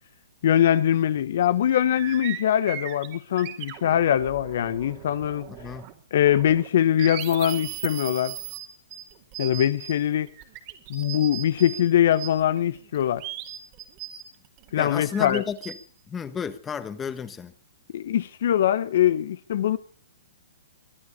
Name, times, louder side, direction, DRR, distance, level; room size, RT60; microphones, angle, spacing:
voice 1, 0.4-5.5 6.1-8.4 9.4-10.3 10.9-13.2 14.7-15.4 17.9-19.8, left 10 dB, 60° left, 1.0 m, -22 dB
sound 1, 1.0-1.1 1.4-6.0 6.3-11.8 12.1-15.7, right 12 dB, 40° right, 2.6 m, -38 dB
voice 2, 5.5-5.9 14.8-15.7 16.1-17.5, left 6 dB, 15° left, 1.4 m, -32 dB
23.0 x 9.7 x 5.5 m
hypercardioid pair, 135°, 0 cm